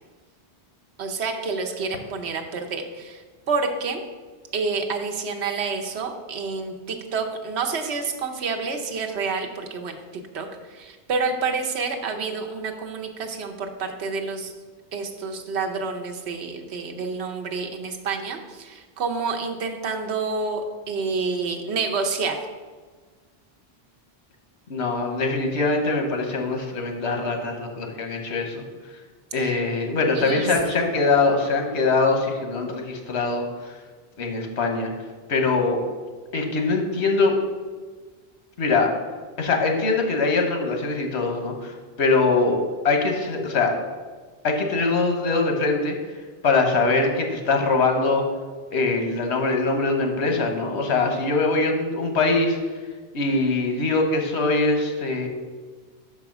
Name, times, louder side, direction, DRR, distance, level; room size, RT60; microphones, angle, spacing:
voice 1, 1.0-4.0 4.5-14.5 14.9-22.5 29.4-29.5 30.2-30.5, right 4 dB, 75° right, 4 dB, 1.0 m, -28 dB
voice 2, 24.7-28.6 29.3-33.8 34.2-34.9 35.3-35.8 36.3-37.4 38.6-38.9 39.4-43.7 44.4-46.0 46.4-48.2 48.7-52.6 53.1-55.3, left 3 dB, 85° left, 3 dB, 1.3 m, -22 dB
5.9 x 4.7 x 5.9 m, 1.4 s
omnidirectional pair, 1.1 m